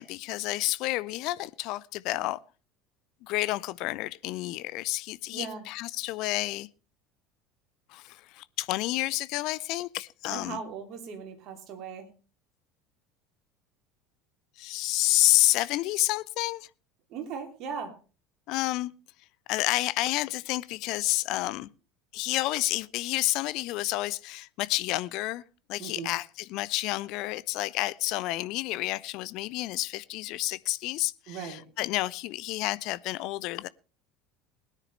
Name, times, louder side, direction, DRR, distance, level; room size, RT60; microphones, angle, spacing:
voice 1, 0.0-2.4 3.2-6.7 7.9-10.6 14.6-16.7 18.5-18.9 19.5-21.7 22.1-25.4 25.7-33.7, left 18 dB, 50° left, 0.6 m, -29 dB
voice 2, 5.3-5.7 10.3-12.1 17.1-17.9 25.8-26.1 31.3-31.6, right 6 dB, 45° right, 2.8 m, -38 dB
21.0 x 10.0 x 3.2 m
figure-of-eight pair, 70°, 0 cm